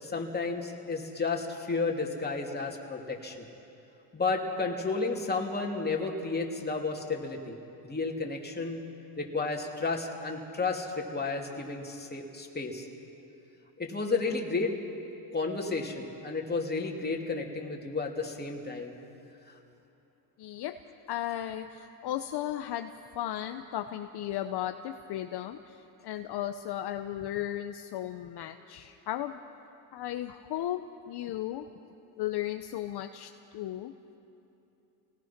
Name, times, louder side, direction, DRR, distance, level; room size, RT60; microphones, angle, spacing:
voice 1, 0.0-3.4 4.1-7.6 7.8-8.8 9.2-12.9 13.8-14.7 15.3-19.0, left 3 dB, 20° left, 0 dB, 2.9 m, -32 dB
voice 2, 20.4-20.8 21.1-29.4 29.9-31.7 32.2-33.9, left 12 dB, 55° left, 7 dB, 0.9 m, -35 dB
29.0 x 19.0 x 5.9 m, 2.9 s
supercardioid pair, 95°, 47 cm